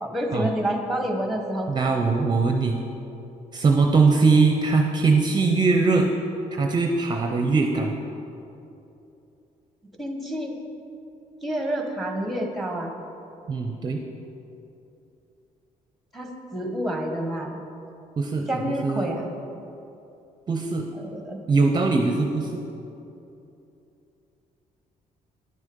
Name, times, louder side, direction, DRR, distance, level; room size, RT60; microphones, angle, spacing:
voice 1, 0.0-1.7 10.0-10.5 11.4-12.9 16.1-17.6 18.5-19.3 20.9-21.4, right 1 dB, ahead, 3 dB, 1.1 m, -28 dB
voice 2, 1.7-2.8 3.5-6.1 6.5-7.9 13.5-14.0 18.2-19.1 20.5-20.8 21.5-22.6, right 4 dB, 30° right, 3 dB, 0.6 m, -21 dB
10.5 x 6.3 x 5.3 m, 2.8 s
cardioid pair, 125°, 15 cm